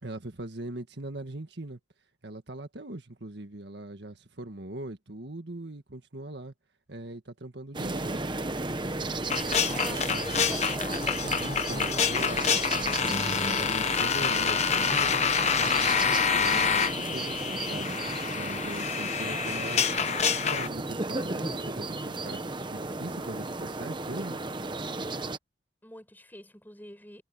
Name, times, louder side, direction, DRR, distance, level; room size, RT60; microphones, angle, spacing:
voice 1, 0.0-1.8 2.2-6.5 6.9-8.3 9.8-10.2 11.4-18.0 18.3-22.4 22.7-24.4, right 1 dB, 60° right, 1.8 m, -40 dB
sound 1, 7.7-25.4, right 2 dB, 25° right, 1.0 m, -34 dB
sound 2, 7.8-16.9, left 1 dB, 70° left, 7.5 m, -49 dB
sound 3, 9.3-20.7, left 7 dB, 35° left, 1.1 m, -27 dB
voice 2, 9.7-11.2 25.8-27.2, left 1 dB, 10° left, 5.8 m, -45 dB
head